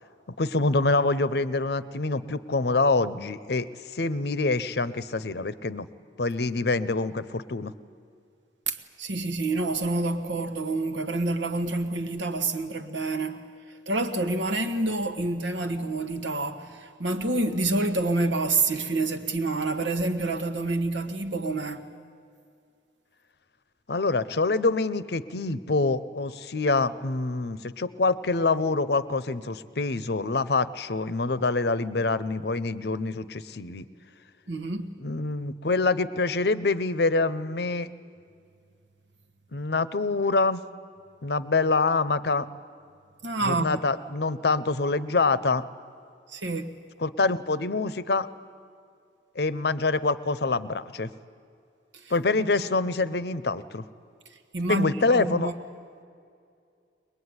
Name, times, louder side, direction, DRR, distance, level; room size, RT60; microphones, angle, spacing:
voice 1, 0.4-5.9 6.2-7.7 23.9-33.9 35.0-37.9 39.5-40.6 41.2-42.5 43.4-45.6 47.0-48.3 49.4-51.1 52.1-53.8 54.7-55.5, left 3 dB, 60° left, 0.7 m, -26 dB
voice 2, 8.7-13.4 13.9-21.9 34.5-34.9 43.2-43.7 46.3-46.7 51.9-52.1 54.5-55.5, right 2 dB, 90° right, 1.5 m, -28 dB
22.5 x 21.0 x 9.7 m
head